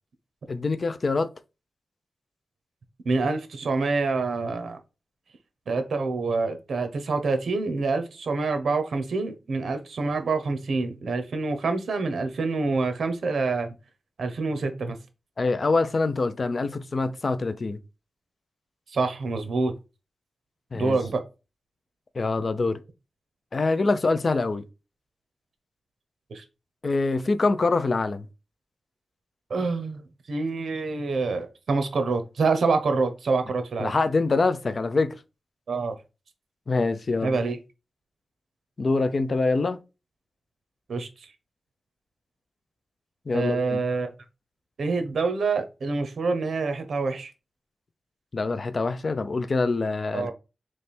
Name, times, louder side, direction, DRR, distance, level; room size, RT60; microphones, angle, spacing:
voice 1, 0.5-1.3 15.4-17.8 20.7-21.0 22.1-22.8 23.5-24.6 26.8-28.3 33.8-35.1 36.7-37.4 38.8-39.8 43.3-43.8 48.3-50.3, left 3 dB, 40° left, 0.4 m, -25 dB
voice 2, 3.0-4.8 5.7-13.7 14.2-15.0 18.9-19.7 20.7-21.2 26.3-26.4 29.5-30.0 30.3-33.9 35.7-36.0 37.2-37.6 40.9-41.1 43.3-44.1 44.8-47.3 50.1-50.3, right 3 dB, 75° right, 0.8 m, -26 dB
3.3 x 3.1 x 4.2 m
wide cardioid pair, 155°, 0 cm